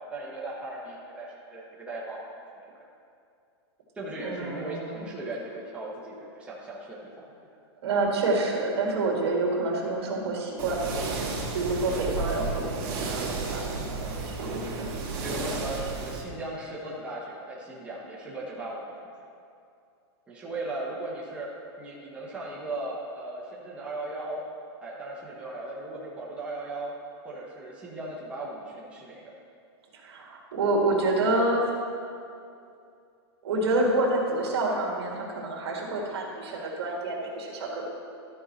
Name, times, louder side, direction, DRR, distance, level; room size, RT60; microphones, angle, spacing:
voice 1, 0.0-2.2 2.6-2.7 3.9-7.3 15.1-19.1 20.3-21.5 21.8-24.4 24.8-26.9 27.2-29.3, right 2 dB, 10° right, -6 dB, 1.2 m, -37 dB
voice 2, 4.2-5.0 7.8-11.2 11.5-14.9 15.3-15.7 29.9-31.6 33.4-37.9, right 2 dB, 65° right, -2 dB, 2.1 m, -28 dB
sound 1, 10.6-16.2, right 4 dB, 45° right, 1.9 m, -33 dB
13.0 x 4.7 x 4.2 m, 2.5 s
hypercardioid pair, 150°, 14 cm